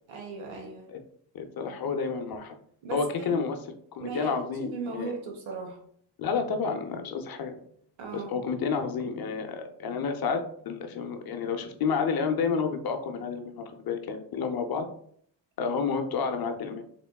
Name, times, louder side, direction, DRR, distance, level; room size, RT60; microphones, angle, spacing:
voice 1, 0.1-0.9 2.8-3.4 4.0-5.8 8.0-8.4, right 4 dB, 85° right, 2 dB, 1.1 m, -37 dB
voice 2, 1.3-2.6 2.9-3.6 3.9-5.1 6.2-7.5 8.1-14.9 15.6-16.8, left 5 dB, 55° left, 7 dB, 0.6 m, -30 dB
3.6 x 3.4 x 2.2 m, 0.63 s
cardioid pair, 105°, 45 cm